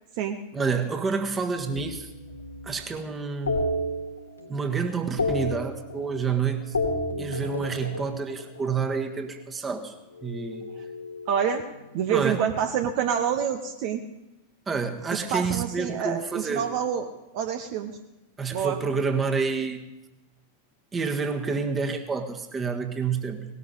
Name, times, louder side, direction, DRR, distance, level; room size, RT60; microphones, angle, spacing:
voice 1, 0.5-2.1 2.6-3.7 4.5-6.8 7.2-9.9 10.2-10.7 12.1-12.4 14.7-16.7 18.4-19.9 20.9-23.5, right 5 dB, 20° right, 5 dB, 1.6 m, -28 dB
sound 1, 1.6-2.8 3.5-4.6 4.9-6.3 6.6-9.0 10.2-11.9, left 1 dB, 80° left, 3.0 m, -32 dB
voice 2, 11.3-11.6 11.9-14.0 15.3-17.9 18.5-18.8, right 8 dB, 45° right, 6 dB, 1.0 m, -27 dB
19.0 x 18.0 x 4.0 m, 0.98 s
figure-of-eight pair, 90°, 0 cm